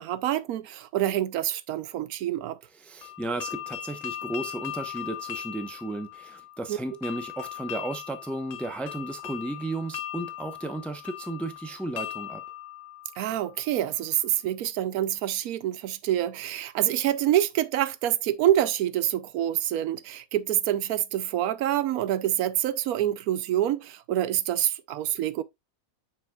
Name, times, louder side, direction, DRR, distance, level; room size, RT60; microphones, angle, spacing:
voice 1, 0.0-2.6 6.7-6.8 13.2-25.4, right 12 dB, 90° right, 1.1 m, -26 dB
voice 2, 2.8-12.4, right 2 dB, ahead, 0.5 m, -34 dB
sound 1, 3.0-13.8, left 12 dB, 85° left, 1.2 m, -39 dB
7.4 x 6.2 x 2.3 m
omnidirectional pair, 1.5 m